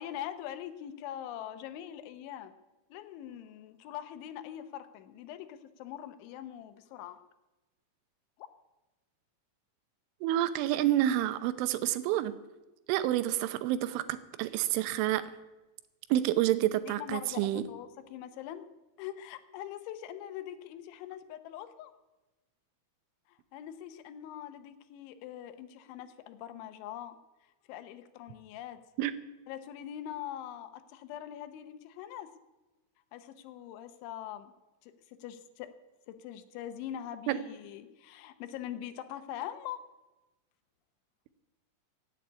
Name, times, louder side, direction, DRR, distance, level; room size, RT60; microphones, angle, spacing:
voice 1, 0.0-2.5 2.9-7.2 16.8-18.7 19.0-21.9 23.3-27.2 27.7-28.8 29.5-32.3 33.1-34.5 34.8-35.7 36.1-39.8, left 11 dB, 80° left, 11 dB, 3.2 m, -43 dB
voice 2, 10.2-12.3 12.9-15.3 16.1-17.6 29.0-29.1 37.3-37.4, right 13 dB, 90° right, 13 dB, 3.3 m, -28 dB
16.5 x 8.5 x 9.5 m, 1.1 s
omnidirectional pair, 5.5 m